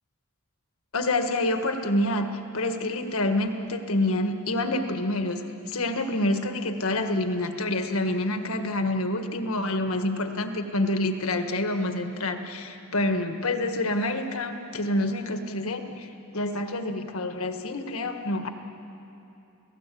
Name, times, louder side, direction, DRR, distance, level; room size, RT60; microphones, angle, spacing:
voice 1, 0.9-18.5, left 1 dB, 85° left, 6 dB, 1.6 m, -27 dB
29.5 x 17.0 x 8.5 m, 2.8 s
head